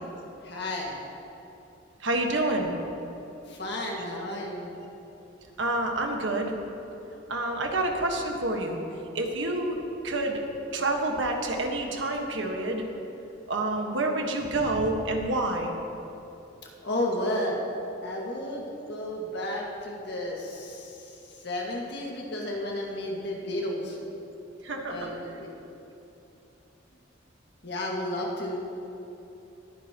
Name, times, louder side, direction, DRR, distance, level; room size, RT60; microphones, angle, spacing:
voice 1, 0.4-1.0 3.5-4.7 16.8-17.6 18.0-21.0 21.4-24.0 24.9-25.5 27.6-28.6, left 1 dB, 60° left, -2 dB, 1.8 m, -32 dB
voice 2, 2.0-2.8 5.6-6.5 7.3-8.8 9.1-9.8 10.0-10.4 10.7-12.8 13.5-15.7 24.6-25.1, right 2 dB, 75° right, 2 dB, 1.4 m, -28 dB
21.0 x 9.7 x 3.0 m, 3.0 s
head